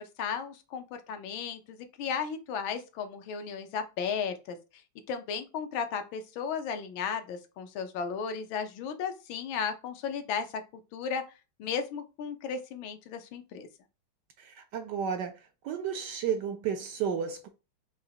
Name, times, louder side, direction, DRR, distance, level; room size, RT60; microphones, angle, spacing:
voice 1, 0.2-4.6 5.1-10.6 10.9-11.2 11.6-13.7, left 6 dB, 75° left, 1.5 m, -34 dB
voice 2, 14.4-15.4 15.6-17.5, right 7 dB, 75° right, 1.0 m, -32 dB
5.5 x 2.9 x 2.8 m
omnidirectional pair, 2.2 m